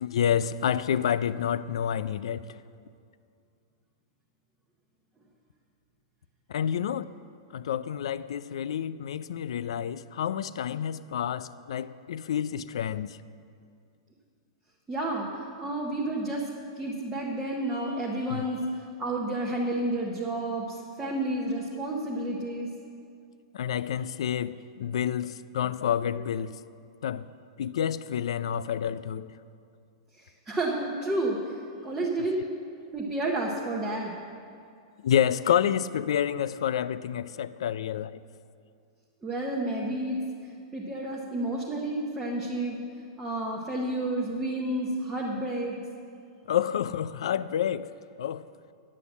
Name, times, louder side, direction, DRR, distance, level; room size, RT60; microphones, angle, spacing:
voice 1, 0.0-2.6 6.5-7.1 7.5-13.2 18.3-18.5 23.5-26.6 27.0-27.3 27.6-29.3 35.0-38.2 46.5-48.5, left 9 dB, 75° left, 0.4 m, -29 dB
voice 2, 14.9-15.3 15.6-16.5 16.8-22.7 30.1-32.4 32.9-34.2 39.2-42.8 43.2-45.8, right 1 dB, 10° right, 0.8 m, -31 dB
9.7 x 8.4 x 7.1 m
supercardioid pair, 175°, 3 cm